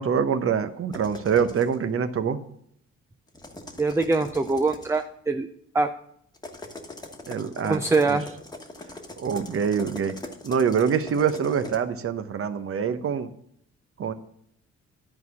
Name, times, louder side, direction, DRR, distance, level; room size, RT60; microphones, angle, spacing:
voice 1, 0.0-2.4 7.3-8.2 9.2-10.1 10.4-13.3 14.0-14.1, right 7 dB, 45° right, 11 dB, 0.9 m, -25 dB
sound 1, 0.9-1.8 3.3-5.0 6.3-11.8, left 2 dB, 15° left, 1.4 m, -42 dB
voice 2, 3.8-5.5 5.7-5.9 7.6-8.3, right 3 dB, 10° right, 7 dB, 0.5 m, -23 dB
11.0 x 4.7 x 7.0 m, 0.73 s
cardioid pair, 90°, 30 cm